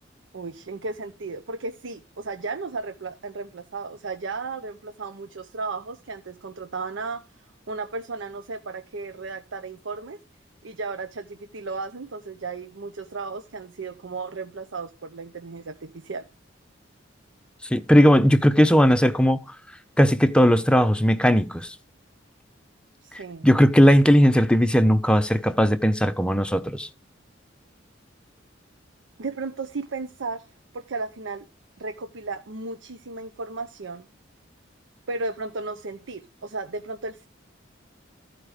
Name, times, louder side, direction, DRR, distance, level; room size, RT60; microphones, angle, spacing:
voice 1, 0.3-7.3 7.7-10.2 10.6-16.3 23.0-23.5 29.2-31.5 31.8-34.1 35.1-37.3, right 3 dB, 80° right, 0.7 m, -34 dB
voice 2, 17.6-19.6 20.0-21.8 23.1-26.9, equal, 5° left, 0.5 m, -18 dB
13.5 x 5.0 x 4.9 m
head